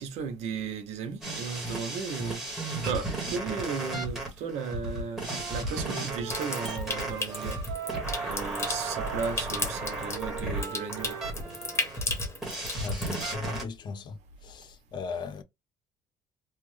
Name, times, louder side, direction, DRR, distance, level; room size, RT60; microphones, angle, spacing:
voice 1, 0.0-2.4 2.9-7.6 8.2-11.2, right 6 dB, 70° right, 0.9 m, -35 dB
sound 1, 1.2-13.6, right 2 dB, 5° right, 1.1 m, -35 dB
Wind instrument woodwind instrument, 5.2-11.9, right 7 dB, 50° right, 1.1 m, -40 dB
Water tap faucet / Sink (filling or washing) / Trickle dribble, 6.3-13.2, left 3 dB, 20° left, 0.9 m, -36 dB
voice 2, 12.8-14.1 14.4-15.4, left 5 dB, 40° left, 0.5 m, -37 dB
3.3 x 2.1 x 3.1 m
cardioid pair, 150°, 12 cm